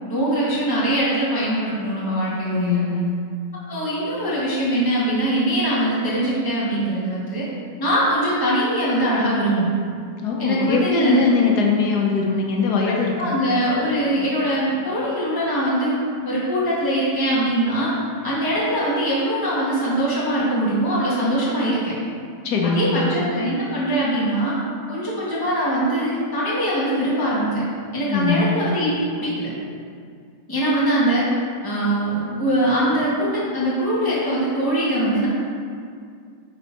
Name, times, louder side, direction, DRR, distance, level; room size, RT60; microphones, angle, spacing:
voice 1, 0.1-2.8 3.7-7.4 7.8-9.7 10.4-11.3 12.9-16.0 16.2-17.9 18.2-21.9 22.6-24.5 24.9-27.6 27.9-29.5 30.5-31.3 31.6-35.3, right 1 dB, 15° left, -9 dB, 1.9 m, -22 dB
voice 2, 2.4-3.1 10.2-13.4 22.4-23.0 28.1-28.5, left 4 dB, 80° left, 0 dB, 1.3 m, -21 dB
11.0 x 4.5 x 4.1 m, 2.2 s
omnidirectional pair, 1.7 m